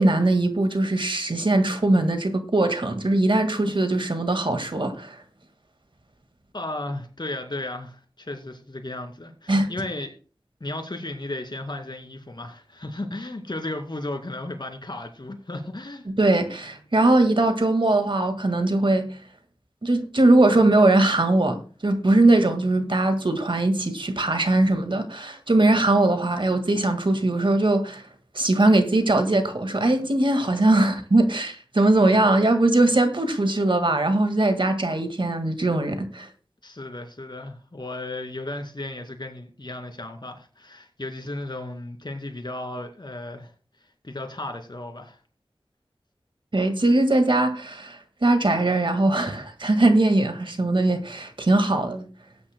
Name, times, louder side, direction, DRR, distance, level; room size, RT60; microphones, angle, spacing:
voice 1, 0.0-5.2 9.5-9.7 16.2-19.1 19.8-28.0 28.4-36.3 46.5-52.0, right 2 dB, 60° right, 1.8 m, -21 dB
voice 2, 6.5-10.1 10.6-16.1 36.6-43.5 44.0-45.2, left 2 dB, 50° left, 2.4 m, -34 dB
19.0 x 9.7 x 2.2 m
wide cardioid pair, 50°, 9 cm